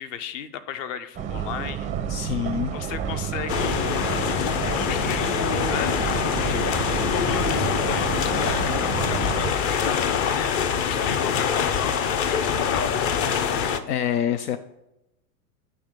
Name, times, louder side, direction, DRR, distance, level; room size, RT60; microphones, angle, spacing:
voice 1, 0.0-1.9 2.7-3.8 4.8-6.2 6.5-10.2 10.8-13.0, left 9 dB, 55° left, 10 dB, 0.9 m, -35 dB
sound 1, 1.1-9.5, right 8 dB, 15° right, 0.4 m, -30 dB
voice 2, 2.1-2.7 13.6-14.6, left 9 dB, 80° left, 11 dB, 0.6 m, -26 dB
sound 2, 3.5-13.8, left 7 dB, 30° left, 0.5 m, -24 dB
8.5 x 3.3 x 6.3 m, 0.90 s
hypercardioid pair, 105°, 46 cm